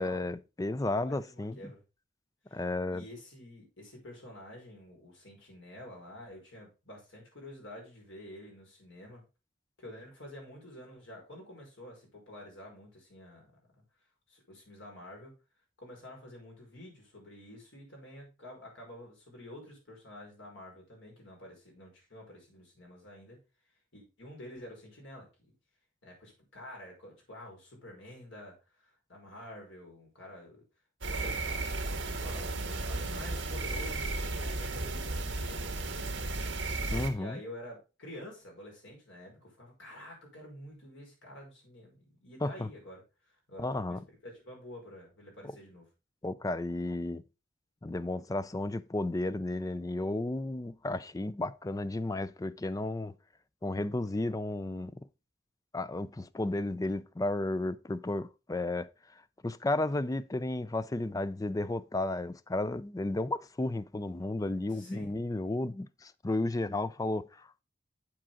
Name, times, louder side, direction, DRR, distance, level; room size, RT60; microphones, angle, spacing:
voice 1, 0.0-1.7 2.5-3.0 36.9-37.4 42.4-42.7 43.6-44.0 46.2-47.2 47.8-53.1 53.6-55.0 55.7-67.6, left 2 dB, 20° left, 0.4 m, -33 dB
voice 2, 0.8-1.8 2.5-2.6 2.9-9.2 9.8-13.5 14.3-15.3 15.8-23.4 23.9-25.3 26.0-30.6 31.0-31.5 31.9-36.5 37.1-45.8 64.7-65.1, left 1 dB, 70° left, 5.1 m, -49 dB
sound 1, 31.0-37.1, right 2 dB, 65° right, 1.8 m, -34 dB
8.7 x 7.6 x 3.7 m
head